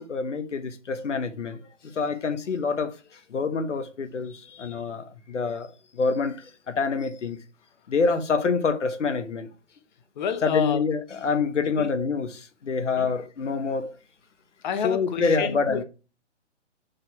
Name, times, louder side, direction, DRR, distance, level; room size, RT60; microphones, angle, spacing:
voice 1, 0.0-2.9 3.3-7.4 7.9-9.5 10.4-13.9 14.8-15.8, left 4 dB, 80° left, 1.1 m, -27 dB
voice 2, 10.2-10.8 11.8-11.9 13.0-13.1 14.6-15.8, left 7 dB, 40° left, 0.8 m, -29 dB
5.2 x 4.5 x 4.3 m
hypercardioid pair, 140°, 36 cm